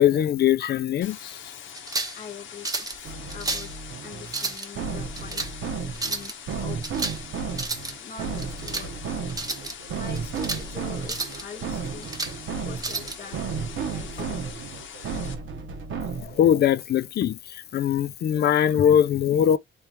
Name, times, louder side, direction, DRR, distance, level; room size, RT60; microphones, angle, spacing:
voice 1, 0.0-1.4 16.2-19.6, left 10 dB, 55° left, 0.4 m, -21 dB
sound 1, 1.0-15.3, left 8 dB, 85° left, 0.8 m, -43 dB
sound 2, 1.7-2.2 2.6-3.0 3.3-3.7 4.2-4.7 5.2-5.5 6.0-6.3 6.8-7.2 7.5-7.9 8.4-8.9 9.3-9.7 10.2-10.6 11.0-11.4 11.9-12.4 12.8-13.2, right 3 dB, 20° right, 0.8 m, -31 dB
voice 2, 2.1-3.7 4.0-5.5 6.0-6.9 8.0-8.9 9.7-12.1 12.6-13.4 13.9-14.4, left 5 dB, 40° left, 0.9 m, -43 dB
sound 3, 3.0-16.5, right 5 dB, 75° right, 1.1 m, -33 dB
3.2 x 3.1 x 2.9 m
cardioid pair, 135°, 20 cm